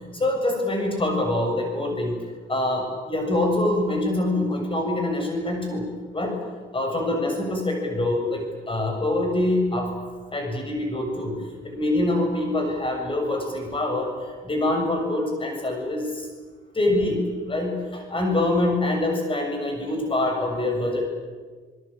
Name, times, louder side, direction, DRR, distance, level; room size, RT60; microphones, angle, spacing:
voice 1, 0.1-2.2 2.5-5.8 6.1-6.4 6.7-9.9 10.3-11.4 11.6-14.1 14.4-16.3 16.7-21.1, left 1 dB, 25° left, 3 dB, 7.4 m, -25 dB
27.0 x 21.0 x 8.8 m, 1.5 s
cardioid pair, 90°, 20 cm